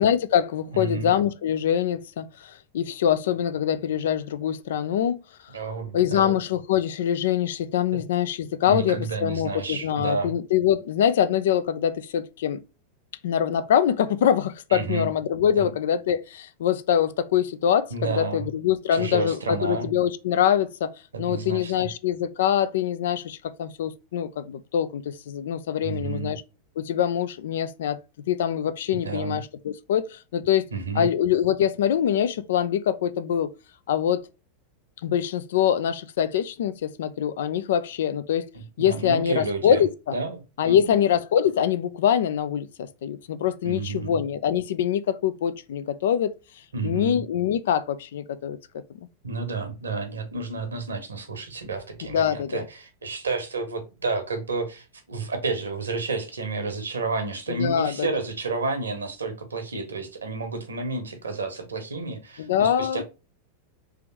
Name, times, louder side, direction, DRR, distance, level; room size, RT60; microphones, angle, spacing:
voice 1, 0.0-5.2 5.9-12.6 13.2-20.9 21.2-26.4 26.8-28.0 28.3-30.6 30.9-33.5 33.9-34.2 35.0-38.4 38.8-40.2 40.6-46.3 46.8-48.6 52.1-52.6 57.5-58.1 62.4-63.0, left 9 dB, 60° left, 0.4 m, -24 dB
voice 2, 0.7-1.1 5.5-6.3 7.9-8.0 8.7-10.3 14.7-15.1 15.6-15.7 17.9-18.5 18.9-19.9 21.1-21.9 25.8-26.3 29.0-29.4 30.7-31.1 38.5-39.8 40.1-41.0 43.6-44.2 46.7-47.2 49.2-63.0, right 3 dB, 75° right, 1.2 m, -31 dB
3.4 x 3.4 x 4.4 m
figure-of-eight pair, 90°, 0 cm